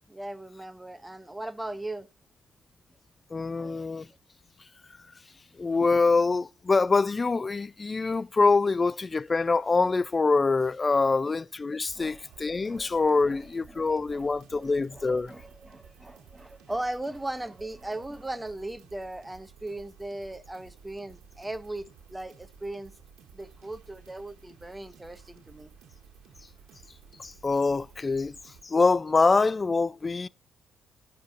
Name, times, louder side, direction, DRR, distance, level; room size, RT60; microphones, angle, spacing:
voice 1, 0.0-2.1 3.6-3.9 11.0-11.3 11.9-12.2 12.7-12.9 13.2-13.4 13.7-22.9 23.3-25.7, right 1 dB, 15° right, 0.7 m, -38 dB
voice 2, 3.3-4.1 5.6-15.3 27.2-28.4 28.6-30.3, left 4 dB, 35° left, 0.3 m, -25 dB
sound 1, 11.8-28.6, right 7 dB, 70° right, 1.4 m, -54 dB
11.0 x 6.7 x 2.5 m
hypercardioid pair, 40°, 0 cm